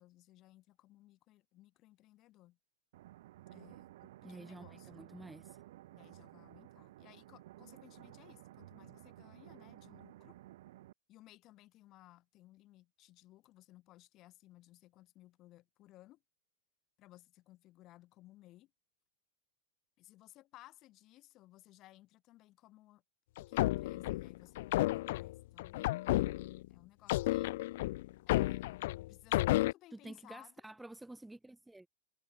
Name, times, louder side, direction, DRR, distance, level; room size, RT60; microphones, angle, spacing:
voice 1, 0.0-2.6 3.5-5.0 5.9-10.4 11.1-16.2 17.0-18.7 20.0-23.0 23.4-25.8 26.7-27.6 28.3-28.7 29.1-30.5, left 16 dB, 30° left, 3.8 m, -60 dB
sound 1, 2.9-10.9, right 15 dB, 60° right, 0.6 m, -55 dB
voice 2, 4.2-5.6 29.9-31.9, right 2 dB, 5° right, 0.6 m, -50 dB
sound 2, 23.4-26.7 27.1-29.7, left 17 dB, 55° left, 0.3 m, -32 dB
supercardioid pair, 150°, 0 cm